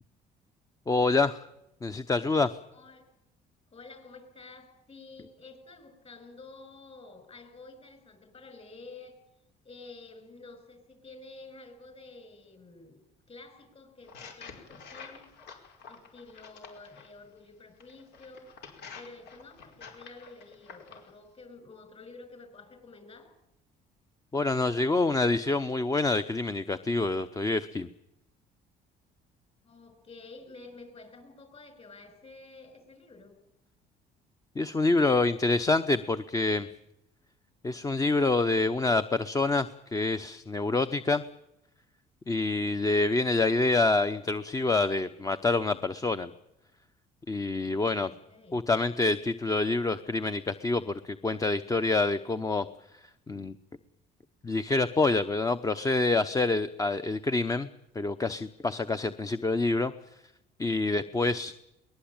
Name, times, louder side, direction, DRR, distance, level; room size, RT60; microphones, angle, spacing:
voice 1, 0.9-1.4 1.8-2.5 24.3-27.9 34.6-36.7 37.6-41.2 42.3-46.3 47.3-48.1 48.5-52.7 53.3-53.5 54.4-57.7 57.9-59.9 60.6-61.5, left 3 dB, 20° left, 11 dB, 0.8 m, -27 dB
voice 2, 2.7-3.0 3.7-9.1 9.6-13.0 13.3-15.3 15.9-18.5 18.9-23.3 29.6-33.3 47.6-48.6, left 3 dB, 35° left, 8 dB, 6.4 m, -50 dB
sound 1, 14.0-17.1 17.8-21.1, left 6 dB, 80° left, 4.8 m, -48 dB
22.0 x 20.0 x 8.9 m, 0.85 s
cardioid pair, 110°, 17 cm